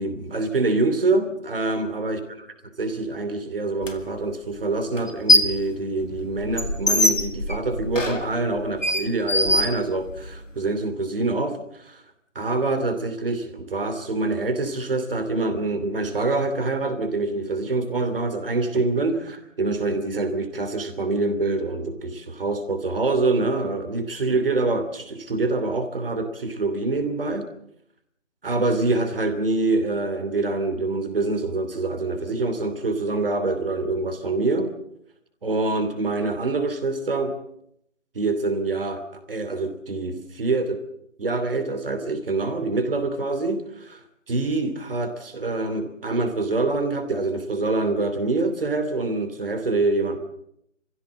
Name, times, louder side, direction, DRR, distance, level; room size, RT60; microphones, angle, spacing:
voice 1, 0.0-2.2 2.8-12.0 12.3-27.5 28.4-34.7 35.4-37.3 38.1-40.8 41.2-44.0 44.3-50.2, right 3 dB, 45° right, 8 dB, 2.9 m, -25 dB
sound 1, 3.8-3.9 5.0-5.6 6.0-10.4, left 1 dB, 80° left, 2.9 m, -22 dB
25.5 x 15.5 x 7.6 m, 0.75 s
figure-of-eight pair, 155°, 38 cm